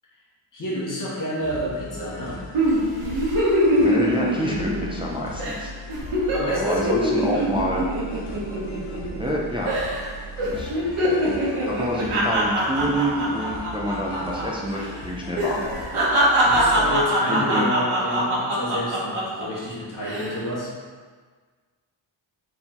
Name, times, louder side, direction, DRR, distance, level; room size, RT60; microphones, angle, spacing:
voice 1, 0.5-2.4 6.3-6.9 7.3-7.5 16.4-20.7, equal, 40° left, -6 dB, 1.2 m, -30 dB
sound 1, 1.4-17.0, left 1 dB, 80° left, 0.8 m, -39 dB
sound 2, 2.5-5.1 5.4-5.6 5.9-9.3 9.7-10.1 10.4-14.5 14.7-14.9 15.4-19.4 19.9-20.4, right 1 dB, 80° right, 1.1 m, -23 dB
voice 2, 3.8-5.7 6.6-7.8 9.2-9.8 10.4-10.7 11.0-15.7 17.3-17.7, equal, 10° right, -3 dB, 0.3 m, -27 dB
4.3 x 3.5 x 2.9 m, 1.5 s
wide cardioid pair, 130°, 49 cm